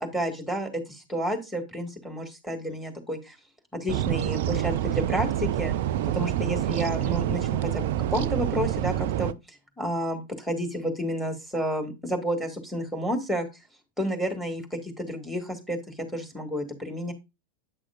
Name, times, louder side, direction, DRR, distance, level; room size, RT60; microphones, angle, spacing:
voice 1, 0.0-3.4 3.7-5.7 6.1-13.5 14.0-15.8 16.1-17.1, equal, ahead, 6 dB, 1.9 m, -30 dB
sound 1, 3.9-9.3, right 12 dB, 50° right, 0.4 m, -27 dB
8.9 x 6.2 x 2.5 m, 0.24 s
figure-of-eight pair, 90°, 0 cm